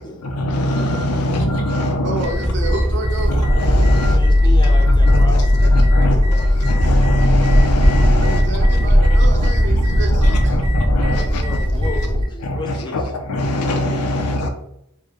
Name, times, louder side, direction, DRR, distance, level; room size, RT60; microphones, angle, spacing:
voice 1, 0.2-2.3 3.3-4.2 4.9-5.4 5.7-11.6 12.4-14.5, equal, 85° left, 0.6 m, -22 dB
voice 2, 2.0-3.3 8.2-10.6, right 2 dB, 55° right, 0.7 m, -29 dB
sound 1, 2.2-12.2, left 1 dB, 20° right, 0.8 m, -16 dB
voice 3, 3.9-6.6 10.9-13.1, left 1 dB, 20° left, 0.6 m, -33 dB
3.2 x 2.2 x 3.7 m
head